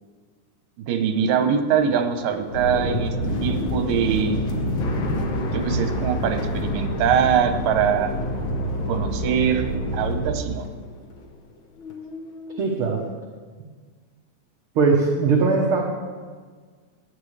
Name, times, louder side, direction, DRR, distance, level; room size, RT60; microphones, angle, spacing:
voice 1, 0.9-3.1 3.4-4.4 5.5-8.1 8.9-10.7, right 8 dB, 80° right, 6 dB, 2.6 m, -23 dB
sound 1, 1.4-11.5 11.8-12.6, left 3 dB, 70° left, 1.2 m, -33 dB
sound 2, 2.5-10.3, equal, 45° left, 2.3 m, -28 dB
voice 2, 12.6-13.0 14.7-15.9, right 4 dB, 60° right, -1 dB, 1.4 m, -20 dB
18.0 x 11.0 x 3.3 m, 1.6 s
omnidirectional pair, 3.8 m